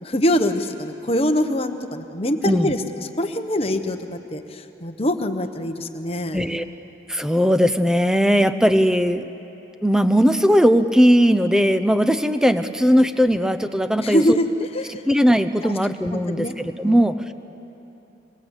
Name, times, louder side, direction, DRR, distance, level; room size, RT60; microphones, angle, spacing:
voice 1, 0.0-2.8 3.2-6.4 14.0-15.0 15.6-15.7 16.1-16.5 16.8-17.0, equal, 30° left, 7 dB, 1.1 m, -24 dB
voice 2, 6.3-6.6 7.1-9.3 9.8-14.4 15.1-17.3, equal, 5° right, 10 dB, 0.6 m, -18 dB
26.5 x 21.0 x 8.2 m, 3.0 s
head